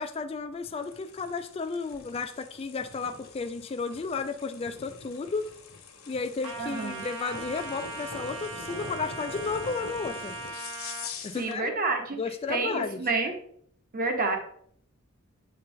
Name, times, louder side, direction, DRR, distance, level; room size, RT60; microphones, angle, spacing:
voice 1, 0.0-5.5 6.1-10.3 11.2-11.7 12.2-13.0, left 4 dB, 25° left, 7 dB, 0.3 m, -33 dB
sound 1, 0.6-11.6, left 4 dB, 80° left, 1.2 m, -44 dB
Trumpet, 6.4-11.1, right 3 dB, 85° right, 1.0 m, -39 dB
voice 2, 6.6-7.1 11.4-12.2 12.5-13.3 13.9-14.4, right 3 dB, 40° right, 4 dB, 1.1 m, -29 dB
7.7 x 4.1 x 3.8 m, 0.64 s
head